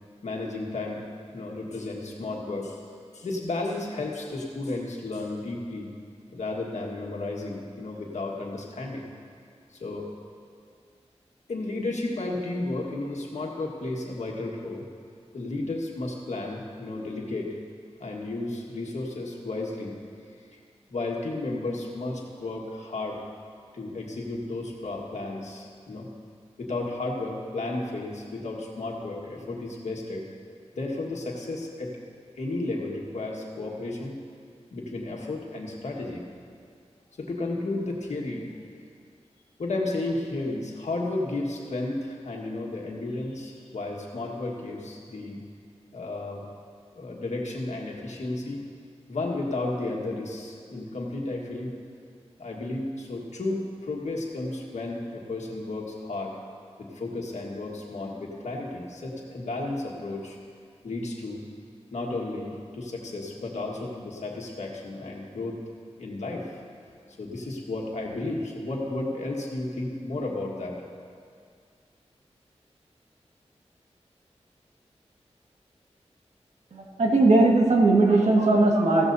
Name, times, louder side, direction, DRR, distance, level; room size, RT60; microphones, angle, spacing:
voice 1, 0.2-1.0 1.3-2.8 3.1-5.9 6.3-9.1 9.7-10.1 11.5-14.8 15.3-17.5 18.0-20.0 20.5-20.6 20.9-23.2 23.7-26.1 26.6-30.3 30.7-31.9 32.4-34.1 34.7-36.2 37.2-38.4 39.6-45.4 45.9-46.4 46.9-48.6 49.1-51.8 52.4-56.4 56.8-60.4 60.8-61.4 61.9-65.6 66.0-66.6 67.2-70.8, left 2 dB, 85° left, -1 dB, 1.6 m, -33 dB
voice 2, 76.7-79.1, right 2 dB, 75° right, -1 dB, 1.8 m, -19 dB
16.0 x 13.5 x 2.7 m, 2.2 s
wide cardioid pair, 100°, 11 cm